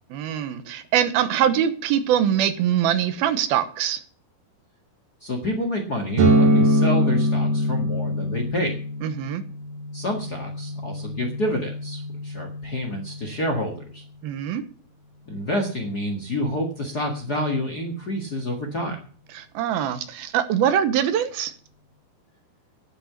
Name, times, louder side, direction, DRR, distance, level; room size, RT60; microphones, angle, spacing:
voice 1, 0.1-4.0 9.0-9.4 14.2-14.6 19.3-21.5, right 9 dB, 85° right, 10 dB, 2.9 m, -23 dB
voice 2, 5.2-8.8 9.9-14.0 15.3-19.0, left 1 dB, 40° left, 3 dB, 1.4 m, -28 dB
sound 1, 6.2-13.8, equal, 60° right, 3.2 m, -24 dB
10.5 x 8.2 x 8.0 m, 0.43 s
omnidirectional pair, 4.3 m